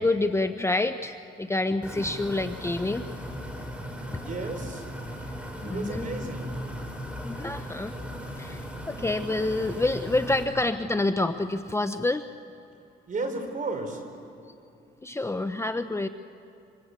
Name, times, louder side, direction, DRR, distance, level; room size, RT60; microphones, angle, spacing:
voice 1, 0.0-3.1 4.1-4.3 5.2-6.1 7.2-7.9 8.4-12.2 15.0-16.1, left 2 dB, 15° left, 9 dB, 0.8 m, -28 dB
sound 1, 1.8-10.4, equal, 5° right, 4.8 m, -37 dB
voice 2, 4.2-4.9 5.6-6.5 13.1-14.0, right 3 dB, 40° right, 5 dB, 4.9 m, -33 dB
27.0 x 25.5 x 8.2 m, 2.7 s
cardioid pair, 90°, 20 cm